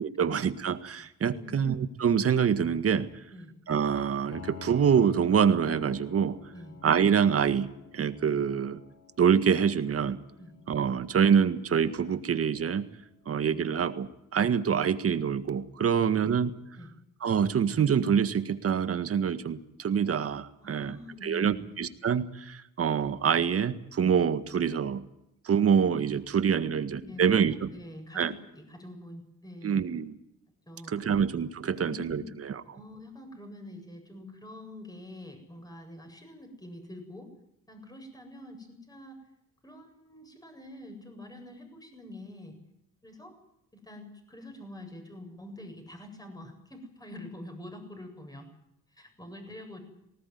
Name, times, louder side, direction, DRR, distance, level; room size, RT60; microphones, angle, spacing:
voice 1, 0.0-3.1 3.7-6.4 6.8-8.8 9.2-10.2 10.7-12.9 13.3-16.5 17.2-21.0 21.2-25.0 25.5-27.7 28.2-28.3 29.6-30.2 30.9-32.6, right 7 dB, 50° right, 11 dB, 1.8 m, -26 dB
voice 2, 1.3-1.7 3.3-3.5 6.5-6.8 10.4-10.6 15.9-16.3 16.7-16.9 20.6-21.8 26.6-29.9 30.7-31.1 31.7-32.3 32.6-37.3 37.7-39.2 39.6-42.6 43.0-43.4 43.7-48.5 48.9-49.8, left 1 dB, 10° left, 5 dB, 8.0 m, -46 dB
Piano, 4.3-13.9, left 6 dB, 60° left, 4.8 m, -51 dB
20.0 x 18.5 x 9.5 m, 0.81 s
cardioid pair, 90°, 30 cm